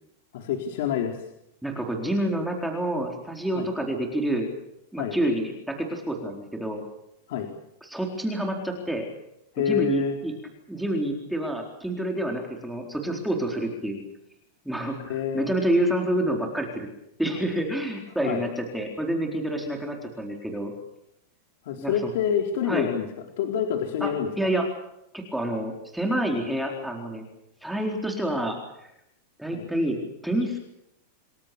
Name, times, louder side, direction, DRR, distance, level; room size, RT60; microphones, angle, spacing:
voice 1, 0.3-1.2 3.5-3.7 5.0-5.2 7.3-7.5 9.5-10.1 15.0-15.5 18.2-18.4 21.7-23.1 23.4-24.3 29.5-29.7, left 8 dB, 60° left, 3 dB, 4.1 m, -27 dB
voice 2, 1.6-4.5 4.9-6.8 7.8-9.1 9.6-10.3 10.7-14.0 14.6-16.9 17.2-20.7 21.8-21.9 22.7-22.9 24.0-24.1 24.4-24.7 25.1-27.2 27.6-28.6 29.4-30.6, right 1 dB, ahead, 1 dB, 4.2 m, -28 dB
29.0 x 21.5 x 6.9 m, 0.81 s
supercardioid pair, 160°, 0 cm